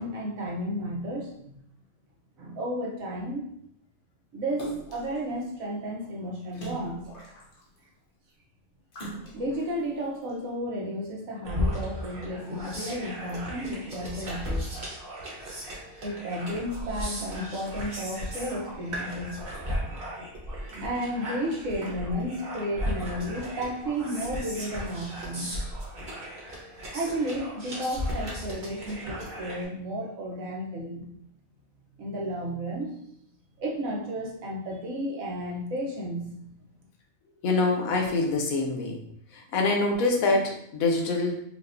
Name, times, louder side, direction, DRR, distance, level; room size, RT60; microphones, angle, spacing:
voice 1, 0.0-1.4 2.4-3.5 4.3-7.1 9.3-14.7 16.0-19.4 19.8-20.0 20.7-25.7 26.9-31.1 32.0-33.0 33.6-36.4, equal, 75° right, -2 dB, 1.3 m, -33 dB
Splash splatter, 4.6-5.2 6.5-7.8 8.9-9.7 10.3-10.4, right 1 dB, 45° left, 0.9 m, -40 dB
sound 1, 11.4-29.6, equal, 45° right, 1.1 m, -36 dB
voice 2, 37.4-39.0 39.3-41.4, left 3 dB, 80° left, 1 dB, 1.2 m, -25 dB
4.9 x 2.5 x 2.6 m, 0.72 s
omnidirectional pair, 1.4 m